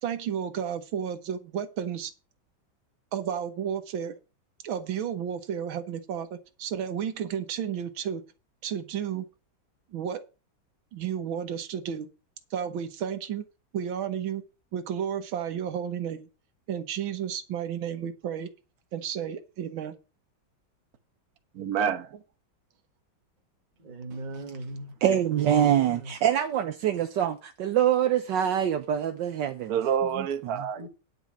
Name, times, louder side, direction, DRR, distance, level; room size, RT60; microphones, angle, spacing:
voice 1, 0.0-2.1 3.1-4.2 4.6-8.2 8.6-9.3 9.9-10.2 10.9-12.1 12.5-13.5 13.7-14.4 14.7-16.3 16.7-18.5 18.9-19.9 26.2-26.3, right 8 dB, 90° right, 1.9 m, -32 dB
voice 2, 21.5-22.2 29.7-30.9, right 8 dB, 55° right, 1.4 m, -28 dB
voice 3, 23.8-24.9 25.6-26.1 30.8-30.9, right 2 dB, 25° right, 1.6 m, -39 dB
voice 4, 25.0-29.7, right 10 dB, 70° right, 1.4 m, -24 dB
10.5 x 5.1 x 7.1 m
omnidirectional pair, 2.1 m